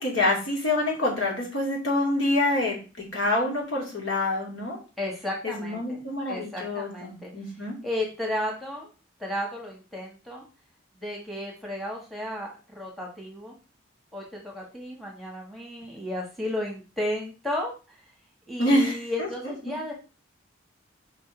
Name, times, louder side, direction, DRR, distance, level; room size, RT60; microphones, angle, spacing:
voice 1, 0.0-4.8 5.4-7.7 18.6-19.5, left 1 dB, 75° left, -2 dB, 2.6 m, -26 dB
voice 2, 5.0-6.0 6.3-7.3 7.8-8.9 9.2-10.4 11.0-12.5 12.7-13.5 14.1-18.0 18.5-19.9, left 1 dB, ahead, -2 dB, 1.5 m, -33 dB
5.2 x 4.1 x 5.0 m, 0.32 s
head